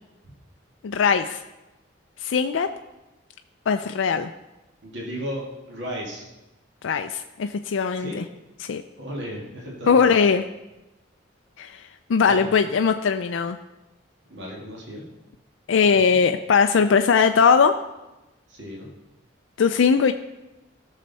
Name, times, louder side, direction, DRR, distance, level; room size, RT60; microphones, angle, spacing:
voice 1, 0.8-1.4 2.2-2.7 3.7-4.3 6.8-8.2 8.7-8.8 9.9-10.4 11.6-11.7 12.1-13.6 15.7-17.8 19.6-20.1, left 6 dB, 75° left, 7 dB, 0.4 m, -20 dB
voice 2, 4.8-6.3 8.0-8.2 9.0-10.1 12.2-12.5 14.3-15.0 15.8-16.1 18.5-18.9, equal, 60° right, -2 dB, 2.1 m, -34 dB
15.0 x 6.6 x 4.1 m, 1.0 s
head